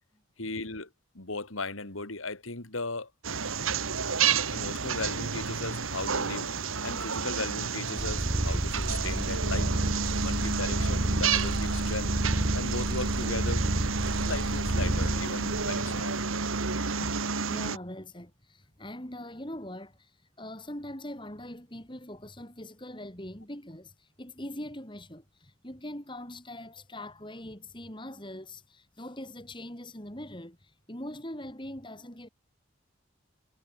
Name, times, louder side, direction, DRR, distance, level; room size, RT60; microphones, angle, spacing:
voice 1, 0.4-0.9 1.2-3.1 4.5-6.5 6.8-9.7 10.2-12.1 12.5-13.7 14.2-16.2 17.0-17.1, left 3 dB, 85° left, 3.6 m, -37 dB
sound 1, 3.2-17.8, right 5 dB, 85° right, 1.9 m, -30 dB
Purr, 8.0-16.0, right 1 dB, 25° right, 0.9 m, -30 dB
voice 2, 16.8-17.2 17.5-20.1 20.4-32.3, left 1 dB, 25° left, 4.4 m, -42 dB
head